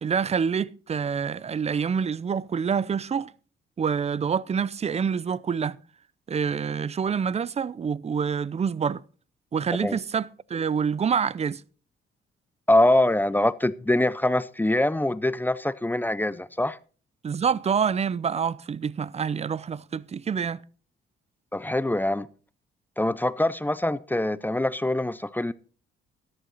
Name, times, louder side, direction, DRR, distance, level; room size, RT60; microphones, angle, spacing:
voice 1, 0.0-3.3 3.8-5.8 6.3-9.0 9.5-11.6 17.2-20.6, right 6 dB, 30° right, 0.6 m, -27 dB
voice 2, 12.7-16.8 21.5-22.3 23.0-25.5, left 1 dB, 10° left, 0.5 m, -24 dB
14.0 x 11.0 x 4.1 m
cardioid pair, 90°, 20 cm